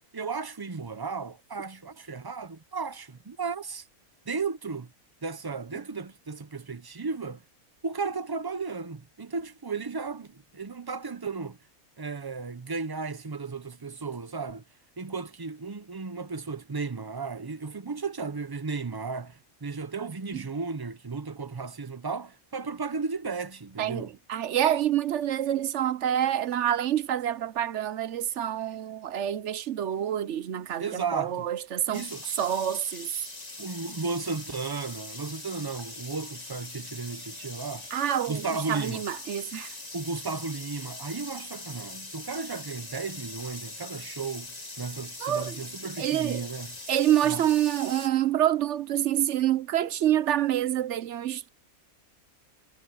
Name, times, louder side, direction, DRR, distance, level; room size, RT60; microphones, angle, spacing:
voice 1, 0.1-3.9 4.3-4.9 5.2-7.4 7.8-11.6 12.0-14.6 15.0-24.2 30.8-31.5 31.9-32.2 33.6-37.9 38.3-39.0 39.9-46.8 47.2-47.4, right 4 dB, 35° right, 0.3 m, -34 dB
voice 2, 23.8-32.0 32.4-33.1 37.9-39.7 45.2-45.6 46.0-46.5 46.9-51.5, right 11 dB, 60° right, 0.9 m, -27 dB
sound 1, 31.9-48.1, left 2 dB, 30° left, 1.9 m, -42 dB
omnidirectional pair, 1.5 m